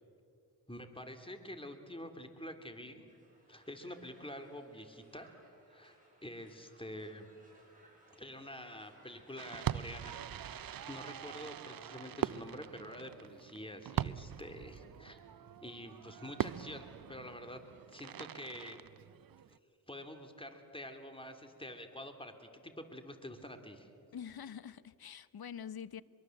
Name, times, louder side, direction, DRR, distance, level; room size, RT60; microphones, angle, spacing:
voice 1, 0.7-3.1 3.5-5.3 5.7-7.3 8.2-15.2 15.6-17.6 17.9-18.8 19.9-23.9, left 1 dB, 15° left, 6 dB, 3.0 m, -47 dB
Crowd, 3.1-11.4, right 2 dB, 20° right, 8.0 m, -65 dB
Fireworks, 9.4-19.6, right 10 dB, 60° right, 0.6 m, -42 dB
voice 2, 24.1-26.0, left 8 dB, 65° left, 16 dB, 0.9 m, -45 dB
24.0 x 23.0 x 7.8 m, 2.4 s
cardioid pair, 60°, 39 cm